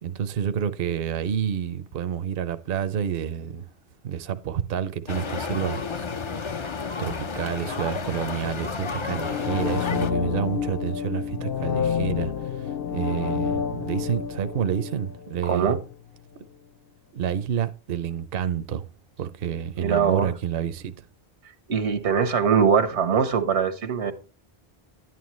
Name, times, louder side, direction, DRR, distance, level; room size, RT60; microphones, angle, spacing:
voice 1, 0.0-3.7 4.0-6.0 6.3-6.7 7.0-15.8 17.1-18.9 19.2-21.1, right 9 dB, 60° right, 0.8 m, -29 dB
sound 1, 5.1-10.1, left 5 dB, 35° left, 0.5 m, -31 dB
sound 2, 9.1-16.0 16.3-16.4, left 8 dB, 60° left, 0.9 m, -29 dB
voice 2, 15.4-15.8 19.8-20.3 21.7-24.1, right 6 dB, 90° right, 1.4 m, -22 dB
11.0 x 9.4 x 3.1 m
omnidirectional pair, 1.1 m